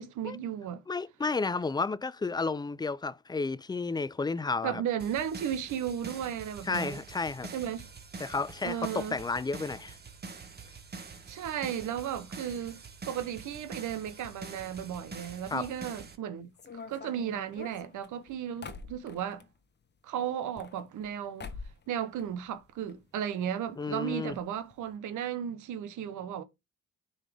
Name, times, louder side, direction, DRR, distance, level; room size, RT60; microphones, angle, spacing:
voice 1, 0.0-0.8 4.6-7.0 7.5-7.9 8.6-9.2 11.3-16.5 16.9-19.4 20.0-21.5 21.9-26.4, right 9 dB, 80° right, 0.9 m, -35 dB
voice 2, 0.9-4.8 6.7-7.5 8.2-10.0 15.5-15.7 23.8-24.3, left 4 dB, 15° left, 0.4 m, -32 dB
sound 1, 5.0-16.2, right 4 dB, 35° right, 1.4 m, -45 dB
sound 2, 16.6-19.5 20.3-21.1 21.4-21.9 22.2-23.0 23.2-23.3 23.5-23.6 24.3-24.4 24.7-24.9, left 5 dB, 35° left, 0.9 m, -45 dB
10.0 x 4.0 x 3.4 m
cardioid pair, 90°, 30 cm